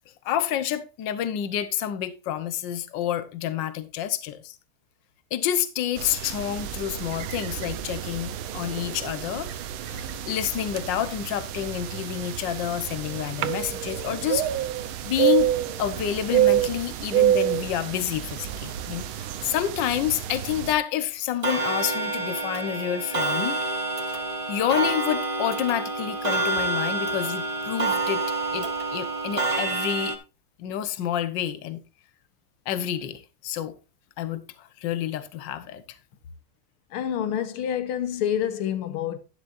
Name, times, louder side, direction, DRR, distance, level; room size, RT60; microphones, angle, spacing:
voice 1, 0.2-4.5 5.3-9.5 9.8-14.4 15.0-15.5 15.8-23.6 24.5-28.2 28.5-30.2 30.6-31.8 32.7-33.7 34.2-35.8, left 10 dB, 65° left, 1.5 m, -29 dB
sound 1, 6.0-20.7, right 12 dB, 75° right, 1.6 m, -28 dB
Clock, 21.4-30.2, right 3 dB, 30° right, 0.6 m, -28 dB
voice 2, 36.9-39.2, left 9 dB, 85° left, 1.9 m, -27 dB
11.5 x 10.5 x 2.5 m
omnidirectional pair, 2.4 m